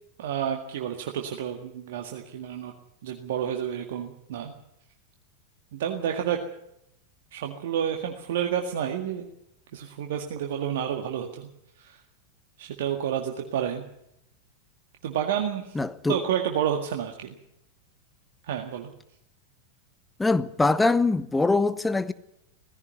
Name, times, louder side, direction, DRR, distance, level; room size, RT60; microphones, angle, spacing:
voice 1, 0.2-2.7 3.0-4.5 5.7-6.4 7.3-9.3 9.7-11.5 11.8-12.0 12.6-13.8 15.0-15.8 16.1-17.3 18.4-18.9, right 9 dB, 55° right, 1.9 m, -30 dB
voice 2, 15.7-16.2 20.2-22.1, left 3 dB, 10° left, 1.0 m, -23 dB
18.0 x 15.5 x 9.3 m
figure-of-eight pair, 90°, 0 cm